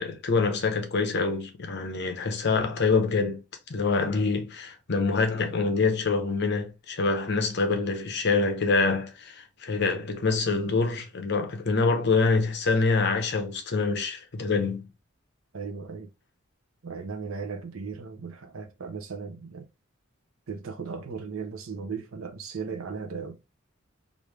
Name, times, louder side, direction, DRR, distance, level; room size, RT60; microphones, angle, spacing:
voice 1, 0.0-3.4 3.7-14.9, left 4 dB, 55° left, 0.7 m, -25 dB
voice 2, 15.5-16.1 16.8-19.7 20.5-23.4, right 5 dB, 85° right, 0.6 m, -36 dB
3.2 x 2.6 x 3.2 m
head